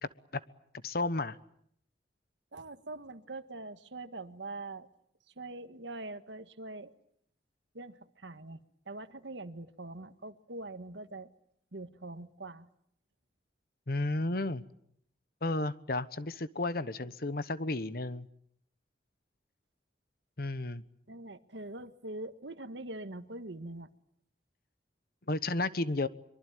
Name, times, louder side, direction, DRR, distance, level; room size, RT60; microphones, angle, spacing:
voice 1, 0.8-1.4 13.9-14.6 15.4-18.3 20.4-20.8 25.3-26.1, left 2 dB, 55° left, 15 dB, 1.1 m, -32 dB
voice 2, 2.5-4.9 5.3-6.9 7.7-11.3 11.7-12.7 21.1-23.9, right 2 dB, 85° right, 10 dB, 1.7 m, -43 dB
24.0 x 23.5 x 9.3 m, 0.71 s
head